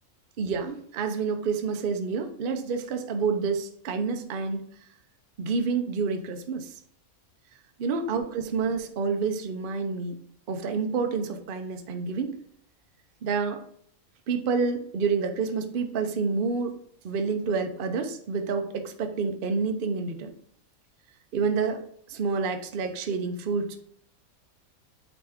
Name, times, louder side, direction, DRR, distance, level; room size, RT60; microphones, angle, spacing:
voice 1, 0.4-4.7 5.4-6.7 7.8-10.2 10.5-12.4 13.2-13.6 14.3-16.8 17.0-20.3 21.3-21.8 22.1-23.8, right 5 dB, 50° right, 6 dB, 0.7 m, -28 dB
8.6 x 3.5 x 3.5 m, 0.64 s
omnidirectional pair, 1.5 m